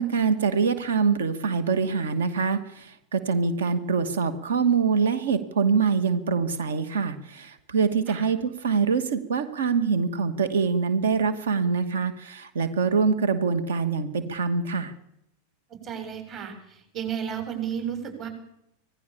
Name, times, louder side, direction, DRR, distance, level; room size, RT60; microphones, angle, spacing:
voice 1, 0.0-14.9, right 5 dB, 65° right, 12 dB, 2.4 m, -24 dB
voice 2, 15.7-18.3, right 8 dB, 30° right, 7 dB, 7.2 m, -33 dB
26.0 x 18.5 x 7.2 m, 0.77 s
figure-of-eight pair, 90°, 0 cm